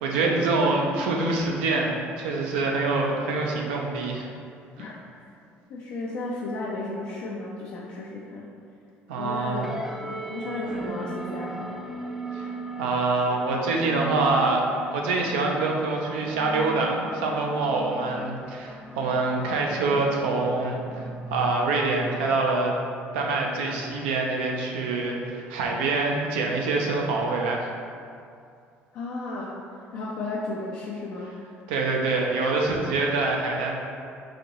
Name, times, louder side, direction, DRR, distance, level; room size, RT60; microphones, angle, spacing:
voice 1, 0.0-4.3 4.8-4.9 9.1-9.7 12.3-12.5 12.8-14.6 14.9-22.7 23.1-27.7 31.7-33.8, right 3 dB, 90° right, 0 dB, 0.5 m, -25 dB
voice 2, 5.7-8.5 9.1-9.7 10.0-11.8 28.9-29.6 29.9-31.3, left 2 dB, 70° left, -5 dB, 0.4 m, -34 dB
sound 1, 9.6-24.4, right 2 dB, 5° right, 0.4 m, -38 dB
4.0 x 2.6 x 3.0 m, 2.4 s
supercardioid pair, 70°, 6 cm